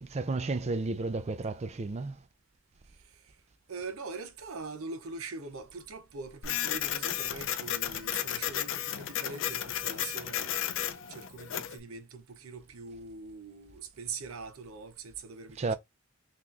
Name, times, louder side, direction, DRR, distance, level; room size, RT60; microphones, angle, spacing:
voice 1, 0.0-2.2 15.6-15.7, right 3 dB, 30° right, 0.4 m, -32 dB
voice 2, 3.7-10.8 11.1-15.7, right 4 dB, 75° right, 0.7 m, -43 dB
Printer, 6.4-11.8, left 11 dB, 60° left, 0.4 m, -33 dB
3.8 x 3.0 x 2.4 m
head